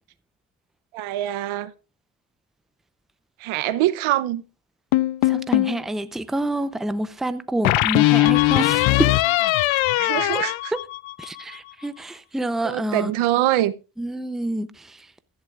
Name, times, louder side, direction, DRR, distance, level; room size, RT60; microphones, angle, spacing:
voice 1, 0.9-1.7 3.4-4.4 9.9-10.7 12.6-13.7, right 14 dB, 75° right, 0.9 m, -24 dB
sound 1, 4.9-5.8 7.7-11.4, left 18 dB, 70° left, 0.6 m, -20 dB
voice 2, 5.2-9.1 11.2-13.1 14.0-15.1, right 1 dB, ahead, 0.6 m, -27 dB
15.5 x 11.0 x 2.4 m
supercardioid pair, 75°, 49 cm